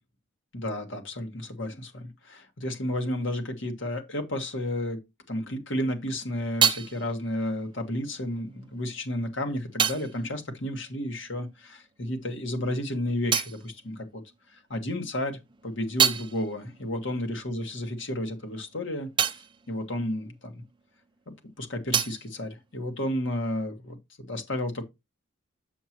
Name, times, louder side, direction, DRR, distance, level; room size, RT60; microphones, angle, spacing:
voice 1, 0.5-5.0 5.3-14.2 14.5-19.4 19.7-20.5 21.6-24.8, left 1 dB, 65° left, 1.8 m, -32 dB
sound 1, 5.9-11.8 12.0-14.7 15.1-21.2 21.4-23.5, right 8 dB, 25° right, 0.5 m, -32 dB
7.3 x 7.0 x 3.0 m
head